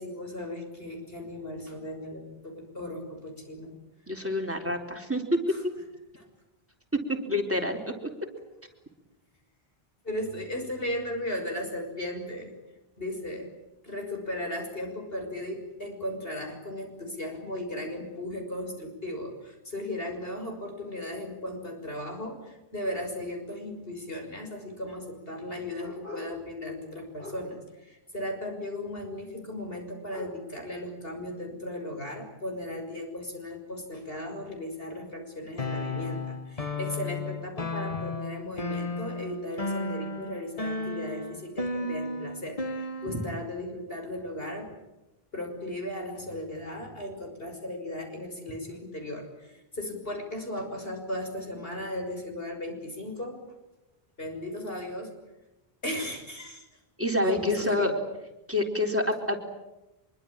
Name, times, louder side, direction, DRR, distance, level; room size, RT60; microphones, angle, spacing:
voice 1, 0.0-3.7 5.5-5.6 6.2-6.3 10.0-12.5 13.0-13.5 13.8-44.7 45.3-53.4 54.2-55.1 55.8-56.6 57.2-57.9, left 1 dB, 65° left, 3 dB, 6.5 m, -36 dB
voice 2, 4.1-5.2 6.9-7.9 41.8-41.9 43.1-43.2 57.0-57.9 58.5-59.4, left 1 dB, 10° right, 2 dB, 4.0 m, -28 dB
sound 1, 35.6-43.5, left 2 dB, 35° left, 1.4 m, -34 dB
25.0 x 23.5 x 8.9 m, 0.97 s
omnidirectional pair, 1.1 m